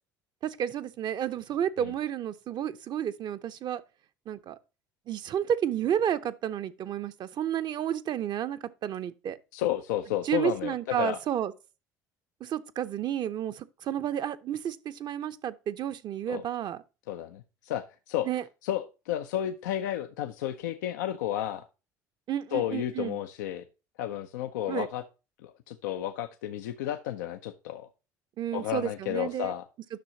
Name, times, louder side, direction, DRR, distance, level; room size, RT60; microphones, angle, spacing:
voice 1, 0.4-3.8 4.3-4.6 5.1-9.4 10.2-11.5 12.4-16.8 18.3-18.4 22.3-23.2 24.7-24.9 28.4-29.5, right 10 dB, 50° right, 0.8 m, -31 dB
voice 2, 9.5-11.2 16.3-16.4 17.1-18.3 18.6-21.7 22.5-23.6 24.0-25.0 25.4-27.9 28.5-29.7, left 12 dB, 80° left, 0.6 m, -32 dB
10.5 x 6.2 x 2.8 m
hypercardioid pair, 70°, 10 cm